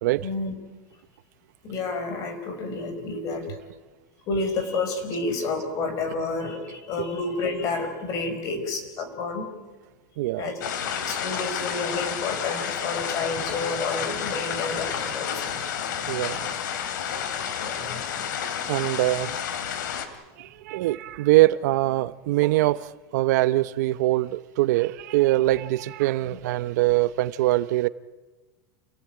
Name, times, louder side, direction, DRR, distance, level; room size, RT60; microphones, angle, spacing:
voice 1, 0.2-0.5 1.6-3.6 4.3-9.5 10.4-10.6 10.9-15.7 16.0-16.1 17.6-18.0 26.3-26.4, left 3 dB, 35° left, 5.0 m, -30 dB
voice 2, 10.2-10.6 12.8-12.9 16.1-16.5 18.7-19.3 20.4-27.9, right 17 dB, 65° right, 0.8 m, -23 dB
sound 1, 10.6-20.1, left 8 dB, 85° left, 3.0 m, -30 dB
28.0 x 17.5 x 8.9 m
supercardioid pair, 160°, 10 cm